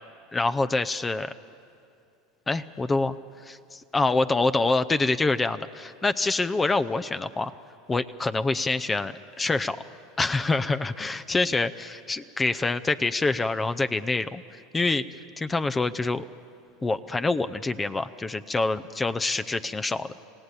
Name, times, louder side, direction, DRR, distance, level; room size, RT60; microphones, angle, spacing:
voice 1, 0.3-1.3 2.5-7.5 7.9-9.8 10.2-15.0 15.4-16.2 16.8-20.1, left 3 dB, 20° left, 12 dB, 0.7 m, -26 dB
28.0 x 17.0 x 8.3 m, 2.6 s
hypercardioid pair, 90°, 0 cm